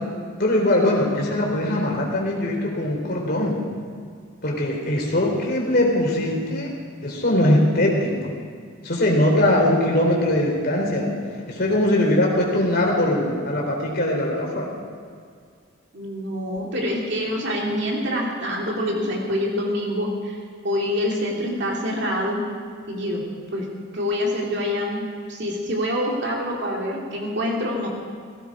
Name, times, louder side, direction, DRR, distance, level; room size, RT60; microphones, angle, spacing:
voice 1, 0.4-3.6 4.4-6.8 7.0-8.1 8.8-11.1 11.5-14.7, left 1 dB, 50° left, -1 dB, 3.5 m, -21 dB
voice 2, 15.9-20.4 20.6-22.4 22.9-23.2 23.5-23.7 23.9-27.9, left 1 dB, 55° right, -1 dB, 2.5 m, -26 dB
17.5 x 16.0 x 4.9 m, 2.1 s
head